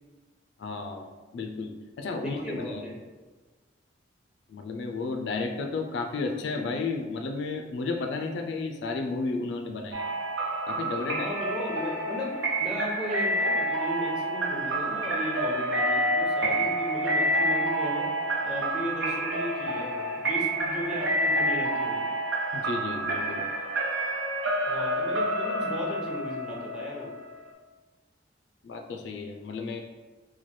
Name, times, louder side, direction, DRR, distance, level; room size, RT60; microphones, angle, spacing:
voice 1, 0.6-2.8 4.5-10.0 10.7-11.3 16.4-16.5 22.5-23.5 28.6-29.8, left 3 dB, 65° left, 4 dB, 0.3 m, -33 dB
voice 2, 2.2-2.9 11.1-18.1 18.4-22.0 24.7-27.1, equal, 5° right, -4 dB, 0.7 m, -36 dB
sound 1, 9.9-27.5, right 1 dB, 85° right, 0.7 m, -28 dB
3.1 x 2.2 x 4.2 m, 1.3 s
head